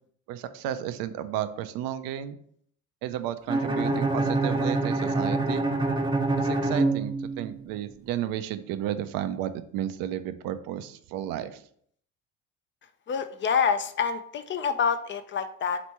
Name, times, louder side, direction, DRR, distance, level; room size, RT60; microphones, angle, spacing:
voice 1, 0.3-2.4 3.0-5.6 6.4-11.6, right 11 dB, 70° right, 11 dB, 0.5 m, -33 dB
Bowed string instrument, 3.5-7.6, right 2 dB, 10° right, 0.7 m, -26 dB
voice 2, 13.1-15.8, left 6 dB, 35° left, 9 dB, 0.4 m, -27 dB
3.3 x 3.1 x 4.2 m, 0.63 s
supercardioid pair, 75°, 36 cm